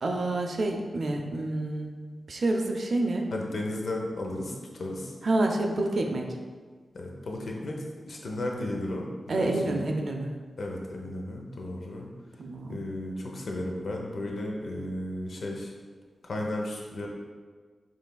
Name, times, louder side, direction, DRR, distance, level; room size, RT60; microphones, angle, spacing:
voice 1, 0.0-1.9 2.3-3.3 5.2-6.4 9.3-10.3 12.4-12.8, right 2 dB, 60° right, 2 dB, 0.4 m, -28 dB
voice 2, 3.3-5.1 6.9-9.8 10.6-12.1 12.7-15.7 16.2-17.1, left 1 dB, 70° left, 0 dB, 0.6 m, -34 dB
5.3 x 3.2 x 2.2 m, 1.5 s
wide cardioid pair, 115°, 0 cm